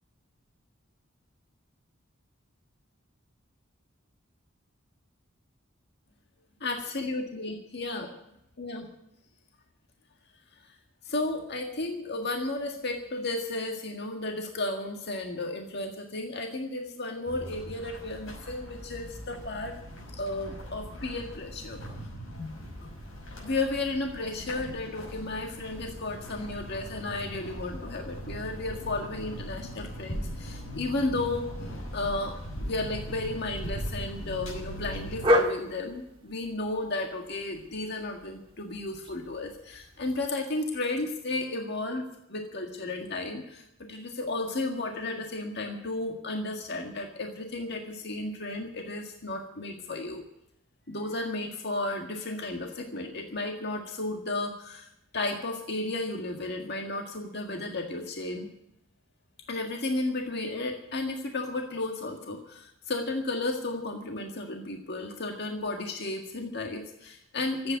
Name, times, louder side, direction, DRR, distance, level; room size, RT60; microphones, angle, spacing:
voice 1, 6.6-8.1 8.6-8.9 10.6-10.8 11.1-19.8 20.1-21.8 22.4-22.5 22.8-22.9 23.4-31.5 31.9-32.4 32.6-50.2 50.9-54.9 55.1-58.5 59.5-67.8, left 2 dB, 55° left, 2 dB, 1.8 m, -33 dB
sound 1, 17.3-35.3, equal, 80° left, 5.7 m, -40 dB
sound 2, 22.3-40.3, left 1 dB, 25° right, 1.6 m, -37 dB
14.5 x 8.9 x 9.5 m, 0.78 s
head